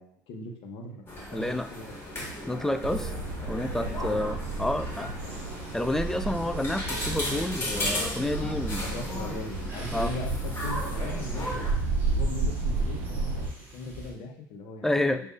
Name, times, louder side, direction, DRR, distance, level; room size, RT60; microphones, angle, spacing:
voice 1, 0.0-1.9 4.0-4.2 5.0-5.4 8.5-11.7 12.1-14.9 15.2-15.3, left 2 dB, 60° left, 2 dB, 0.9 m, -40 dB
sound 1, 1.1-11.7, left 1 dB, 25° left, 1.7 m, -36 dB
voice 2, 1.3-1.7 2.5-3.1 3.5-5.1 5.7-8.9 9.9-10.1 14.8-15.2, left 1 dB, 5° left, 9 dB, 0.3 m, -29 dB
sound 2, 2.8-13.5, right 3 dB, 65° right, 0.7 m, -32 dB
sound 3, 5.2-14.1, right 1 dB, 20° right, 1.8 m, -47 dB
6.5 x 2.6 x 2.4 m, 0.66 s
hypercardioid pair, 70°, 10 cm